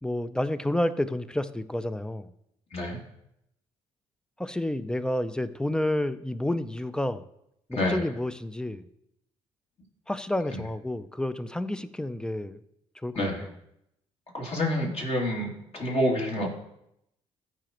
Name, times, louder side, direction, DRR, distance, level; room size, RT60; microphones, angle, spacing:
voice 1, 0.0-2.3 4.4-7.2 7.7-8.9 10.1-12.6 13.0-13.5, left 1 dB, 5° left, 13 dB, 0.5 m, -30 dB
voice 2, 7.7-8.0 13.1-13.4 14.3-16.5, left 1 dB, 45° left, -1 dB, 2.7 m, -28 dB
13.5 x 5.2 x 3.0 m, 0.78 s
hypercardioid pair, 55°, 14 cm